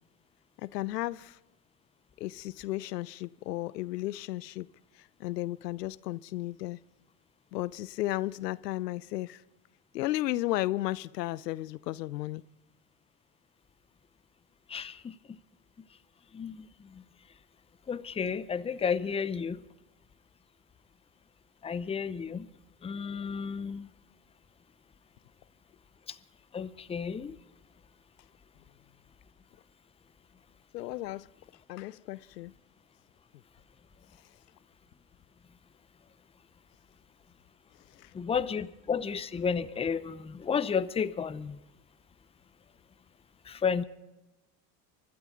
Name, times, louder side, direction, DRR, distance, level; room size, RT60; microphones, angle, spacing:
voice 1, 0.6-1.4 2.2-4.7 4.9-6.8 7.5-9.4 9.9-12.4 30.7-31.3 31.7-32.5 37.9-38.1, left 16 dB, 90° left, 20 dB, 0.6 m, -34 dB
voice 2, 14.7-15.1 16.3-16.7 16.9-17.0 17.9-19.6 21.6-22.5 22.8-23.9 26.1-26.2 26.5-27.4 38.1-41.6 43.5-43.8, left 6 dB, 15° left, 14 dB, 0.6 m, -32 dB
24.5 x 12.5 x 3.8 m, 1.0 s
hypercardioid pair, 90°, 48 cm